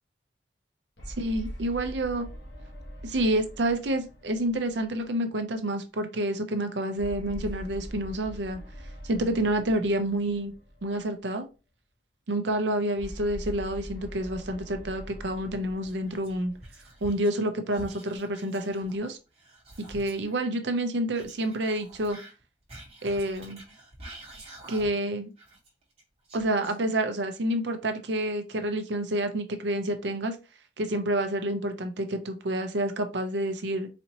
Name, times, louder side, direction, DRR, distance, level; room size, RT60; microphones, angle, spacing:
sound 1, 1.0-5.5 7.0-11.3 13.0-17.5, equal, 75° left, 1.2 m, -43 dB
voice 1, 1.2-2.3 3.0-8.6 9.0-10.5 10.8-11.5 12.3-16.5 17.0-19.2 19.9-22.2 23.0-23.6 24.7-25.3 26.3-30.4 30.8-33.9, right 1 dB, 75° right, 7 dB, 0.6 m, -28 dB
Whispering, 15.8-17.4 17.7-20.4 21.1-25.1 25.4-27.2, right 1 dB, 35° right, 1.3 m, -48 dB
4.2 x 2.7 x 2.9 m, 0.30 s
head